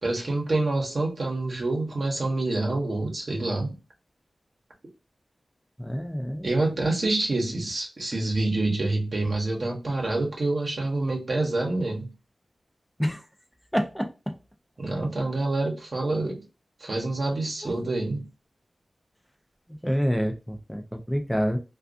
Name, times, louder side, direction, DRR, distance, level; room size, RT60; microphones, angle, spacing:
voice 1, 0.0-3.8 6.4-12.1 14.8-16.4 16.8-18.2, right 2 dB, 60° right, 0.9 m, -27 dB
voice 2, 5.8-6.5 13.0-13.2 13.7-14.1 19.8-21.6, equal, 5° left, 0.4 m, -27 dB
2.4 x 2.3 x 2.4 m
wide cardioid pair, 70°, 0 cm